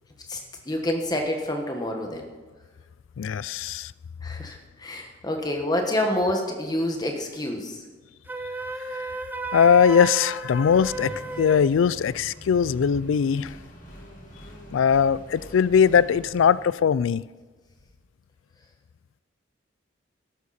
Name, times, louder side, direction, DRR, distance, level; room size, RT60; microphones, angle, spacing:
voice 1, 0.7-2.2 4.2-7.8, left 1 dB, 20° left, 1.4 m, -27 dB
voice 2, 3.2-3.9 8.9-9.0 9.5-13.6 14.7-17.2, left 7 dB, 75° left, 0.3 m, -20 dB
Wind instrument woodwind instrument, 8.3-11.7, right 3 dB, 10° right, 0.5 m, -33 dB
Accelerating revving vroom, 10.5-16.8, equal, 40° left, 2.8 m, -44 dB
13.5 x 11.5 x 4.3 m
head